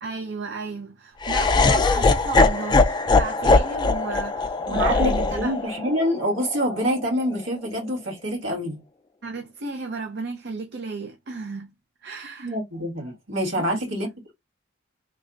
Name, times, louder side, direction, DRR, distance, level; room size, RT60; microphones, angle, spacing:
voice 1, 0.0-5.7 9.2-11.7 12.0-12.5 13.6-13.8, right 3 dB, 55° right, 0.6 m, -34 dB
Laughter, 1.2-7.4, left 3 dB, 20° left, 0.4 m, -21 dB
voice 2, 4.7-8.8 12.4-14.3, equal, 70° right, 1.8 m, -26 dB
3.2 x 2.2 x 3.8 m
head